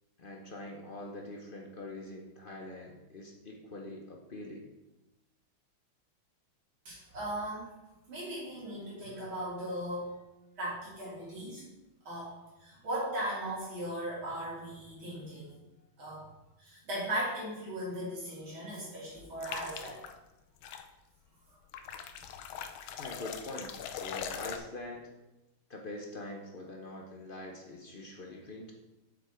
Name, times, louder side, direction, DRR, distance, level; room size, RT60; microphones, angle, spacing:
voice 1, 0.2-4.7 23.0-25.1 25.7-28.7, left 2 dB, 50° left, 1 dB, 0.6 m, -44 dB
voice 2, 6.9-7.7 8.1-10.1 10.6-11.6 12.0-15.5 16.0-16.2 16.6-20.0, right 1 dB, 80° right, -7 dB, 4.1 m, -38 dB
sound 1, 19.4-20.1 20.6-20.8 21.7-24.6, left 8 dB, 80° left, 1.5 m, -41 dB
7.3 x 6.5 x 4.4 m, 1.0 s
omnidirectional pair, 2.2 m